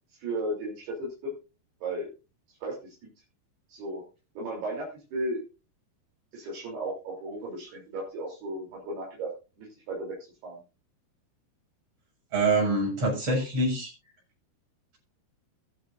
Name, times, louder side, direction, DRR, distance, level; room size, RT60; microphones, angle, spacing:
voice 1, 0.2-1.3 1.8-2.1 2.6-2.9 3.7-4.0 4.4-5.4 6.3-9.3 9.6-10.6, right 1 dB, 65° right, 5.4 m, -35 dB
voice 2, 12.3-13.9, right 2 dB, 35° right, 8.1 m, -25 dB
22.0 x 8.1 x 2.7 m
omnidirectional pair, 5.1 m